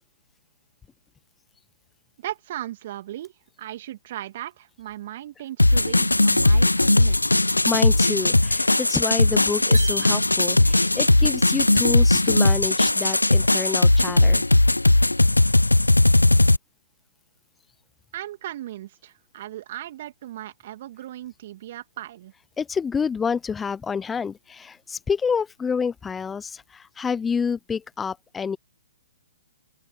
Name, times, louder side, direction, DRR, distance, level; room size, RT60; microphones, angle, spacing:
voice 1, 2.2-3.3 3.6-7.3 18.1-22.3, right 13 dB, 45° right, 2.9 m, -37 dB
sound 1, 5.6-16.6, left 2 dB, 90° left, 0.8 m, -18 dB
voice 2, 7.6-14.5 22.6-28.6, left 6 dB, 10° left, 0.7 m, -28 dB
sound 2, 9.7-10.9, right 2 dB, 85° right, 2.8 m, -34 dB
open air
figure-of-eight pair, 125°, 0 cm